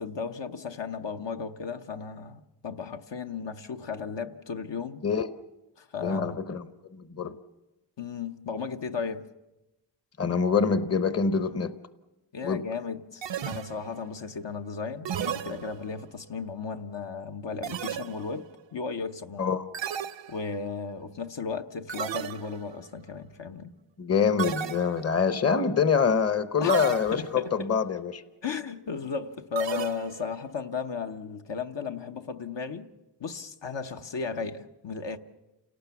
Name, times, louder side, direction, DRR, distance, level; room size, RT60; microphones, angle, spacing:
voice 1, 0.0-5.0 5.8-6.4 8.0-9.2 12.3-19.5 20.3-23.7 26.6-26.8 27.1-27.7 28.4-32.9 33.2-35.2, left 5 dB, 70° left, 1.1 m, -35 dB
voice 2, 6.0-6.6 6.9-7.4 10.2-11.7 12.4-12.6 19.4-19.7 24.0-28.2, left 6 dB, 35° left, 0.9 m, -25 dB
sound 1, 13.2-14.1 15.0-16.1 17.6-18.5 19.7-20.7 21.9-22.7 24.4-25.3 26.7-27.5 29.6-30.4, right 9 dB, 75° right, 0.7 m, -34 dB
28.5 x 18.5 x 7.0 m
wide cardioid pair, 95°, 44 cm